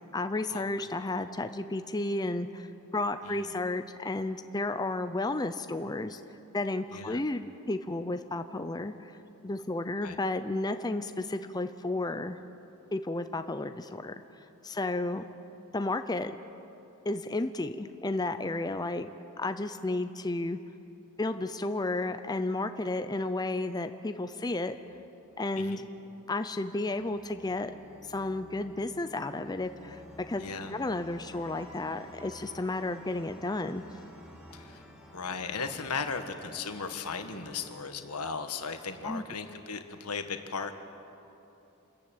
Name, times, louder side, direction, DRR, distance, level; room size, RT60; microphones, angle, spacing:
voice 1, 0.1-2.7 2.9-6.2 6.5-9.1 9.4-12.4 12.9-14.1 14.6-15.3 15.7-16.3 17.0-19.1 19.4-20.6 21.2-24.8 25.4-25.8 26.3-27.7 28.0-30.0 30.3-30.4 30.7-33.8 39.0-39.2, left 2 dB, 20° left, 9 dB, 0.6 m, -32 dB
voice 2, 3.2-3.6 6.9-7.2 10.0-10.2 25.5-25.8 30.4-30.8 34.5-34.9 35.1-40.7, left 5 dB, 85° left, 7 dB, 1.5 m, -37 dB
sound 1, 24.8-26.1 26.7-39.3, left 1 dB, 5° right, 2.7 m, -53 dB
sound 2, 31.2-36.4, left 1 dB, 35° right, 5.8 m, -55 dB
27.0 x 14.0 x 8.9 m, 2.9 s
head